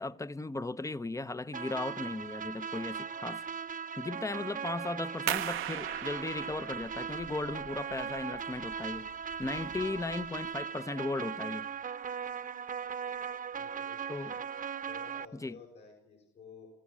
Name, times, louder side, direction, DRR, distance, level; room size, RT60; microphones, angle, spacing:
voice 1, 0.0-3.4 4.0-9.1 9.4-11.7 14.1-14.3 15.4-15.6, left 2 dB, 15° left, 0.8 m, -36 dB
sound 1, 1.5-15.3, right 6 dB, 45° right, 1.0 m, -39 dB
sound 2, 5.3-10.6, right 13 dB, 85° right, 1.0 m, -40 dB
voice 2, 13.5-14.4 14.9-16.7, left 5 dB, 65° left, 6.0 m, -52 dB
25.0 x 15.5 x 8.5 m
cardioid pair, 90°, 20 cm